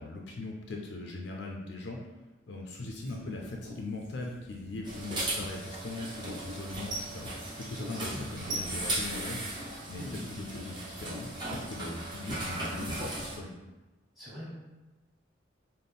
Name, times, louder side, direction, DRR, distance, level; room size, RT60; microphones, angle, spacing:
voice 1, 0.0-2.0 2.5-9.5 9.9-13.6, left 2 dB, 60° left, 0 dB, 0.4 m, -40 dB
Writing, 2.8-11.3, right 1 dB, 75° right, 1.3 m, -45 dB
sound 1, 4.8-13.4, right 1 dB, 25° right, 0.7 m, -37 dB
voice 2, 7.9-8.2 10.0-10.2 14.2-14.5, left 1 dB, ahead, -8 dB, 1.1 m, -43 dB
4.1 x 2.1 x 3.4 m, 1.1 s
head